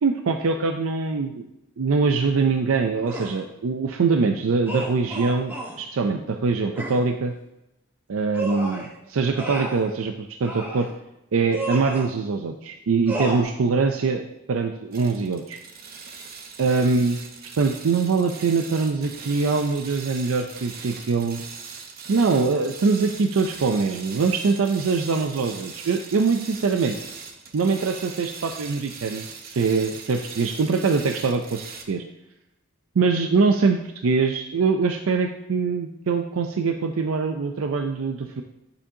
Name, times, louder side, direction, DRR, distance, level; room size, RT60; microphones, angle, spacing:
voice 1, 0.0-1.4 1.8-7.3 8.1-10.9 11.3-14.2 14.5-15.6 16.6-17.2 17.6-21.4 22.1-27.0 27.5-32.0 33.0-38.4, right 4 dB, 85° right, 5 dB, 0.5 m, -23 dB
sound 1, 3.1-3.4 4.7-5.8 6.8-7.0 8.3-8.9 9.4-9.9 10.4-10.9 11.5-12.1 13.1-13.4, right 1 dB, 10° right, 1.4 m, -31 dB
sound 2, 14.9-31.8, right 5 dB, 45° right, 0.9 m, -40 dB
10.0 x 7.1 x 2.8 m, 0.89 s
head